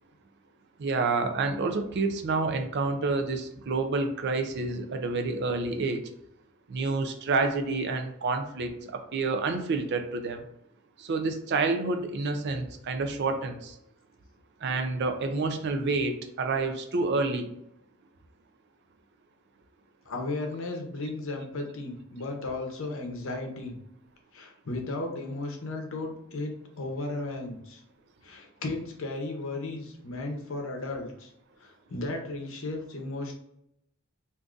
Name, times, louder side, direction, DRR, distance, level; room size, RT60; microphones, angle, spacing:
voice 1, 0.8-6.0 6.7-10.4 11.0-13.7 14.6-17.5, right 3 dB, 50° right, 6 dB, 0.4 m, -28 dB
voice 2, 20.1-23.7 24.3-27.8 28.2-31.3 31.6-33.4, left 2 dB, 60° left, 2 dB, 0.7 m, -35 dB
3.7 x 2.6 x 2.4 m, 0.76 s
head